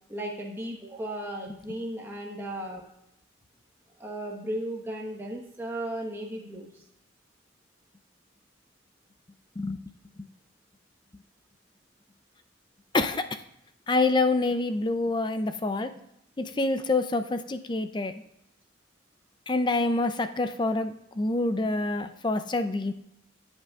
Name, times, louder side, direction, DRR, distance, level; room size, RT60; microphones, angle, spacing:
voice 1, 0.1-2.8 4.0-6.8, right 1 dB, 10° right, -2 dB, 1.2 m, -35 dB
voice 2, 13.9-15.9 16.4-18.1 19.5-22.9, left 2 dB, 25° left, 9 dB, 0.5 m, -26 dB
15.5 x 8.1 x 2.4 m, 0.80 s
head